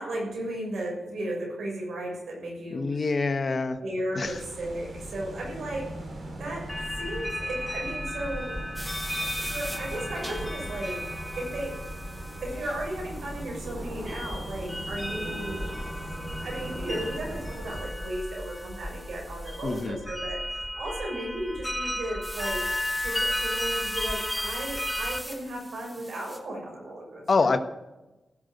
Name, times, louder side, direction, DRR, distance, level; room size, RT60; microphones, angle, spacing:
voice 1, 0.0-3.0 3.8-8.5 9.1-11.0 11.3-11.7 12.4-15.7 16.0-22.6 23.0-27.6, right 1 dB, 85° right, -1 dB, 6.6 m, -35 dB
voice 2, 2.7-3.8 4.1-4.4 19.6-20.0 27.3-27.6, left 4 dB, 55° left, 8 dB, 1.2 m, -25 dB
sound 1, 4.2-17.8, right 1 dB, 65° right, 4.2 m, -40 dB
sound 2, 6.7-25.2, left 1 dB, 10° left, 1.4 m, -34 dB
sound 3, 8.8-19.9 22.2-26.4, equal, 5° right, 3.2 m, -43 dB
16.0 x 6.9 x 9.2 m, 1.0 s
cardioid pair, 65°, 0 cm